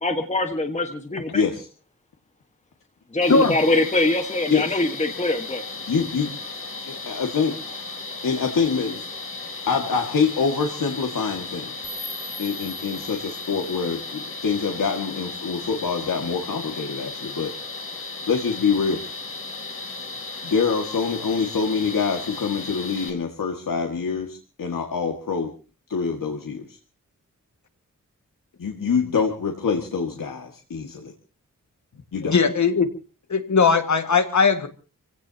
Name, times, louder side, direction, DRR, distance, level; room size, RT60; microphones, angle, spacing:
voice 1, 0.0-1.4 3.1-5.6, left 2 dB, 20° left, 5 dB, 1.5 m, -23 dB
voice 2, 1.3-1.7 4.5-4.6 5.9-6.3 6.9-7.9 8.2-9.1 9.7-11.7 12.4-17.6 18.3-19.0 20.4-25.5 25.9-26.7 28.6-31.1 32.1-32.4, left 5 dB, 85° left, 2 dB, 2.1 m, -25 dB
sound 1, 3.2-23.1, left 3 dB, 40° left, 3.8 m, -35 dB
sound 2, 11.8-14.8, left 1 dB, 5° right, 6.9 m, -41 dB
voice 3, 32.3-32.9 33.3-34.7, left 5 dB, 65° left, 8 dB, 1.9 m, -19 dB
28.5 x 17.0 x 2.9 m, 0.36 s
wide cardioid pair, 130°, 32 cm